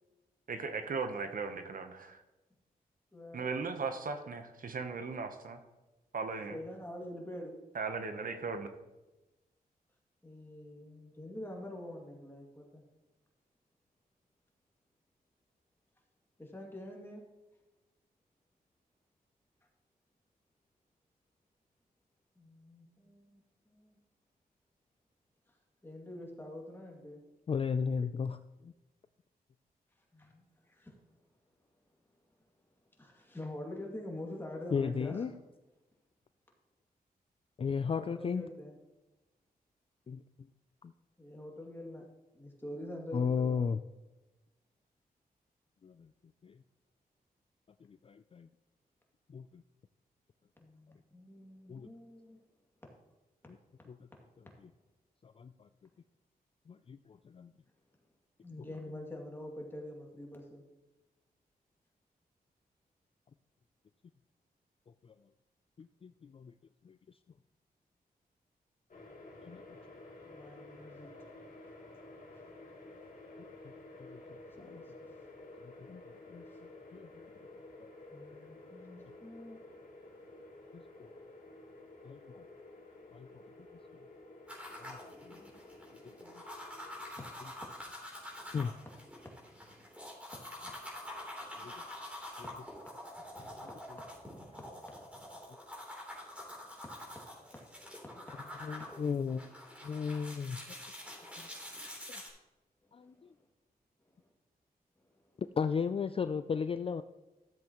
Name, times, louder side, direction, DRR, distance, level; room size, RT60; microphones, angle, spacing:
voice 1, 0.5-2.2 3.3-5.6 6.1-6.6 7.7-8.7, right 4 dB, 60° right, 7 dB, 1.0 m, -37 dB
voice 2, 3.1-3.5 6.5-7.5 10.2-12.8 16.4-17.2 22.4-24.0 25.8-27.2 30.1-31.0 33.0-35.4 37.9-38.7 41.2-42.0 42.3-43.7 50.6-52.4 52.8-52.9 58.4-60.6 70.2-71.1 74.6-75.2 76.5-76.6 78.1-80.3 81.1-81.8 82.7-83.0 85.4-85.7 87.0-88.6 89.2-89.7 90.3-90.4 90.7-91.9 92.3-92.5 92.8-93.0 93.4-95.2 96.4-97.2 97.5-98.9 103.1-103.4 104.1-104.3 105.0-105.3, left 1 dB, 15° left, -1 dB, 2.4 m, -47 dB
voice 3, 27.5-28.7 34.7-35.3 37.6-38.5 40.1-40.5 40.8-40.9 43.1-43.8 45.8-46.1 46.4-46.6 47.8-48.5 49.3-49.6 51.7-51.9 53.5-53.6 53.9-54.1 55.2-55.7 56.7-57.5 58.6-58.7 65.0-65.2 65.8-66.5 66.8-67.2 69.4-69.6 73.4-73.7 74.1-74.8 75.6-76.4 76.9-77.1 77.8-77.9 80.7-81.1 82.0-82.4 83.1-83.4 84.7-85.4 86.2-86.3 88.5-88.7 91.6-91.7 92.4-92.5 93.6-93.7 98.6-99.4 99.8-100.6 101.4-101.5 102.1-102.2 102.9-103.3 105.4-107.0, left 6 dB, 35° left, 11 dB, 0.3 m, -36 dB
sound 1, 68.9-87.1, left 2 dB, 60° left, 2.0 m, -52 dB
sound 2, 84.5-102.3, left 1 dB, 10° right, 3.4 m, -47 dB
13.5 x 7.6 x 3.0 m, 1.1 s
cardioid pair, 75°, 16 cm